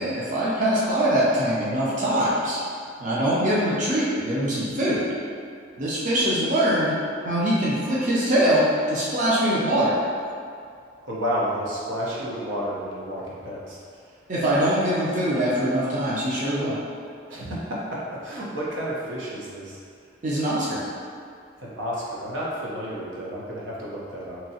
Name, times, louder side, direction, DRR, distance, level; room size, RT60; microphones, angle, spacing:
voice 1, 0.0-2.6 3.0-5.1 5.8-6.9 7.2-8.6 8.9-9.9 14.3-16.7 20.2-20.8, right 1 dB, 40° right, -7 dB, 0.5 m, -23 dB
voice 2, 11.0-13.8 14.1-14.2 17.3-19.8 21.6-24.4, equal, 85° right, -6 dB, 0.7 m, -31 dB
2.9 x 2.6 x 2.7 m, 2.3 s
head